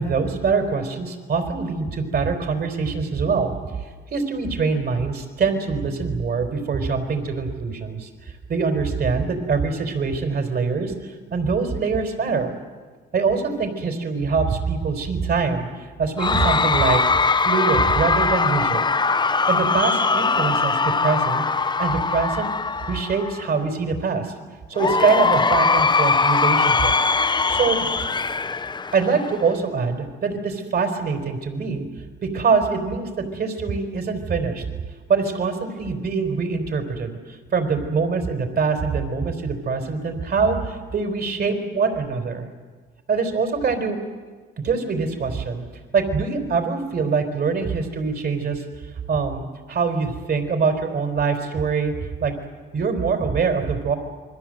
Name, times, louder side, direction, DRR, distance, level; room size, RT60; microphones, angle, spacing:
voice 1, 0.0-3.5 4.1-12.6 13.1-17.0 17.4-18.9 19.5-20.8 21.0-21.4 21.8-22.5 22.9-24.3 24.7-26.9 27.5-27.9 28.9-31.9 32.2-34.7 35.1-42.5 43.1-44.0 44.6-45.6 45.9-48.6 49.1-51.9 52.2-52.3 52.7-53.9, right 5 dB, 55° right, 6 dB, 4.3 m, -24 dB
Cheering / Crowd, 16.2-23.5 24.8-29.5, left 4 dB, 20° left, 0.8 m, -21 dB
29.0 x 22.0 x 7.8 m, 1.5 s
cardioid pair, 90°, 20 cm